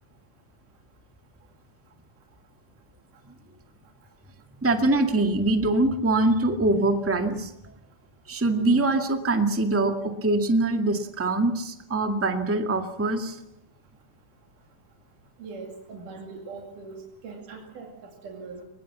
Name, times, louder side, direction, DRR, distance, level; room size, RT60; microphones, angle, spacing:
voice 1, 4.6-7.5 8.3-13.4, right 2 dB, 5° right, 5 dB, 1.3 m, -23 dB
voice 2, 15.4-18.6, right 4 dB, 85° right, 1 dB, 4.1 m, -41 dB
23.5 x 20.5 x 7.3 m, 0.84 s
omnidirectional pair, 3.5 m